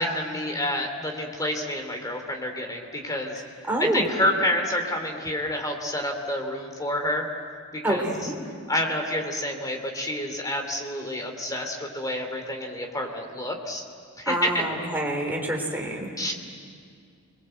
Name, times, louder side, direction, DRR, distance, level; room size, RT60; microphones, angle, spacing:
voice 1, 0.0-3.4 3.8-7.3 7.7-8.1 8.7-13.8 14.2-14.8 16.2-16.3, left 1 dB, 15° left, 3 dB, 3.0 m, -28 dB
voice 2, 3.7-4.1 7.8-8.4 14.3-16.1, right 1 dB, 10° right, 0 dB, 3.6 m, -27 dB
29.0 x 22.5 x 8.0 m, 2.2 s
head